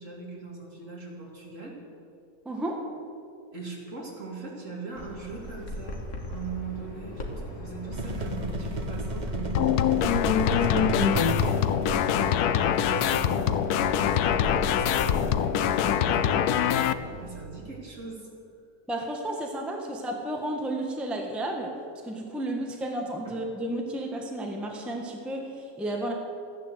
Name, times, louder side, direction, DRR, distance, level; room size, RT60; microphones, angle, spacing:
voice 1, 0.0-1.7 3.5-6.0 6.3-10.1 10.4-18.3 23.2-23.3, right 4 dB, 50° right, -2 dB, 3.1 m, -40 dB
voice 2, 2.4-2.9 18.9-21.7 22.0-26.1, right 1 dB, ahead, 1 dB, 1.3 m, -32 dB
Bird vocalization bird call bird song, 5.0-15.2, left 1 dB, 55° left, 2.0 m, -39 dB
sound 1, 7.9-17.4, right 1 dB, 30° right, 1.2 m, -34 dB
sound 2, 9.5-16.9, left 10 dB, 85° left, 1.1 m, -24 dB
14.0 x 10.5 x 8.0 m, 2.5 s
omnidirectional pair, 1.6 m